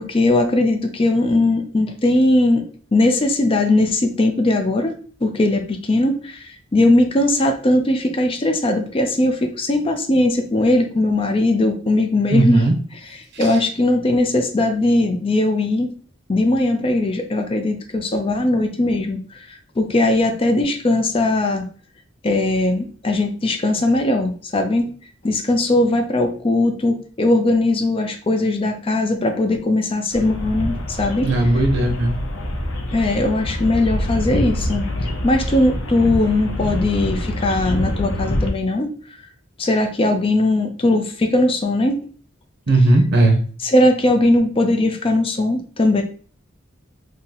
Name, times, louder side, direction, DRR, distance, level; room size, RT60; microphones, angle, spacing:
voice 1, 0.0-2.6 2.9-15.9 16.3-21.6 22.2-24.9 25.2-31.6 32.9-34.9 35.2-38.9 39.6-42.0 43.6-46.0, left 2 dB, 30° left, 4 dB, 0.4 m, -19 dB
voice 2, 12.3-12.7 31.2-32.2 42.7-43.4, right 2 dB, 55° right, 4 dB, 0.7 m, -16 dB
sound 1, 30.1-38.5, left 1 dB, 80° left, 0.7 m, -25 dB
2.7 x 2.6 x 3.9 m, 0.43 s
head